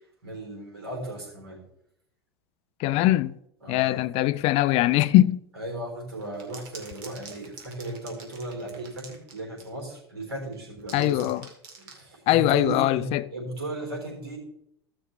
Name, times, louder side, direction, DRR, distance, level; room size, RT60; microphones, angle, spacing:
voice 1, 0.2-1.6 3.6-4.2 5.5-11.3 11.8-14.4, right 2 dB, 85° right, 3.8 m, -36 dB
voice 2, 2.8-3.4 3.7-5.4 10.9-11.5 12.3-13.3, left 15 dB, 50° left, 0.5 m, -21 dB
sound 1, 6.2-9.8 10.5-12.0, right 5 dB, 60° right, 2.3 m, -46 dB
15.0 x 6.1 x 3.3 m
hypercardioid pair, 85°, 13 cm